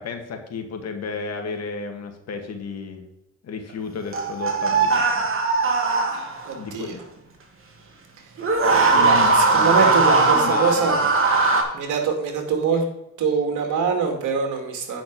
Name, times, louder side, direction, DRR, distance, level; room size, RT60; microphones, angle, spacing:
voice 1, 0.0-3.0 3.4-5.3 6.6-7.0 8.9-11.0, left 5 dB, 55° left, 5 dB, 2.0 m, -31 dB
sound 1, 4.1-6.5 8.4-11.6, right 4 dB, 45° right, 2.2 m, -19 dB
voice 2, 6.5-7.0 8.2-8.3 8.9-11.0 11.7-12.8 13.2-15.0, right 5 dB, 75° right, 4 dB, 2.3 m, -24 dB
9.2 x 5.7 x 5.3 m, 0.88 s
cardioid pair, 90°, 30 cm